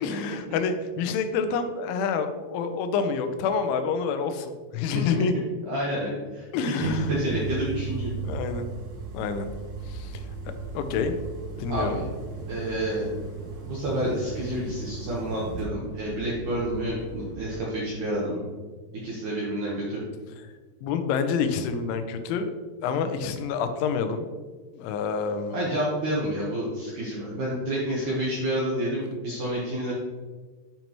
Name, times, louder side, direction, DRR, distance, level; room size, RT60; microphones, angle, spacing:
voice 1, 0.0-5.3 6.5-7.1 8.2-8.7 9.1-9.5 9.9-10.1 10.7-11.1 11.6-12.0 20.8-22.5 22.8-24.2 24.8-25.7, left 5 dB, 85° left, 8 dB, 3.1 m, -27 dB
voice 2, 5.7-6.5 6.7-8.1 11.7-12.0 12.5-13.2 13.7-18.5 19.0-20.0 25.5-29.9, right 1 dB, 70° right, -6 dB, 1.9 m, -29 dB
sound 1, 6.7-17.6, right 4 dB, 55° right, 2.8 m, -36 dB
9.0 x 5.3 x 3.0 m, 1.4 s
omnidirectional pair, 5.4 m